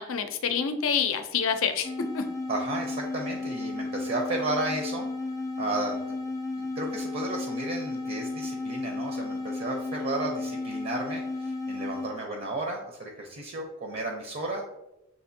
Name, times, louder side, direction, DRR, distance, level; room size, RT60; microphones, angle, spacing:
voice 1, 0.0-2.3, left 6 dB, 80° left, 8 dB, 0.5 m, -27 dB
sound 1, 1.8-12.2, left 3 dB, 15° left, 0.3 m, -33 dB
voice 2, 2.5-5.1 5.6-6.2 6.6-14.6, right 2 dB, 50° right, 1 dB, 0.6 m, -33 dB
7.2 x 2.5 x 2.6 m, 0.92 s
head